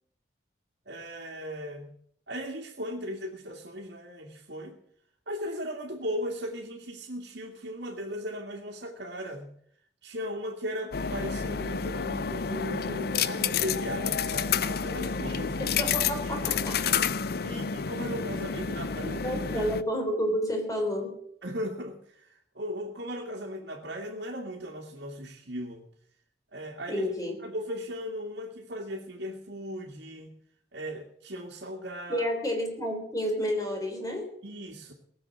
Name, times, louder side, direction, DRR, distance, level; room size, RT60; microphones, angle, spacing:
voice 1, 0.9-1.9 2.3-4.8 5.3-9.5 10.0-15.8 16.2-16.5 17.4-19.7 21.4-25.9 26.5-27.1 27.4-30.3 30.7-32.3 34.4-34.9, equal, 80° right, -3 dB, 2.3 m, -37 dB
sound 1, 10.9-19.8, left 6 dB, 60° left, 0.6 m, -30 dB
voice 2, 15.6-16.8 19.0-21.2 26.9-27.4 32.1-34.4, equal, 20° left, 3 dB, 3.6 m, -30 dB
18.5 x 7.8 x 7.7 m, 0.68 s
head